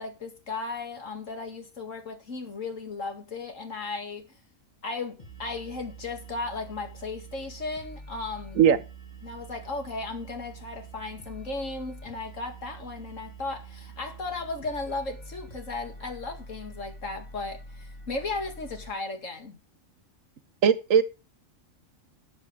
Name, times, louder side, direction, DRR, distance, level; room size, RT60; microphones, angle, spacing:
voice 1, 0.0-4.4 4.8-8.6 9.2-19.6, left 3 dB, 70° left, 2.3 m, -35 dB
sound 1, 5.2-18.9, right 3 dB, 35° left, 2.6 m, -45 dB
voice 2, 20.6-21.0, right 8 dB, 75° right, 1.3 m, -18 dB
12.5 x 7.7 x 4.8 m
omnidirectional pair, 1.4 m